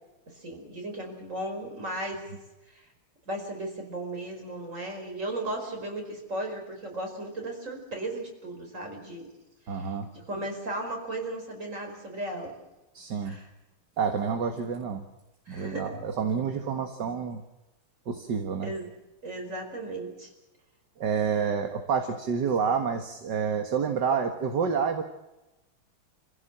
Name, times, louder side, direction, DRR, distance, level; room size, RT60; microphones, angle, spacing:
voice 1, 0.3-2.3 2.7-2.9 3.3-9.3 9.7-12.6 13.2-13.5 15.5-16.0 18.6-18.9 19.2-20.3, right 1 dB, 35° right, 2 dB, 5.4 m, -36 dB
voice 2, 9.7-10.1 12.9-13.4 14.0-15.0 15.5-17.4 18.1-18.7 21.0-25.0, right 6 dB, 55° right, 6 dB, 2.1 m, -28 dB
27.0 x 16.0 x 7.5 m, 1.0 s
omnidirectional pair, 2.3 m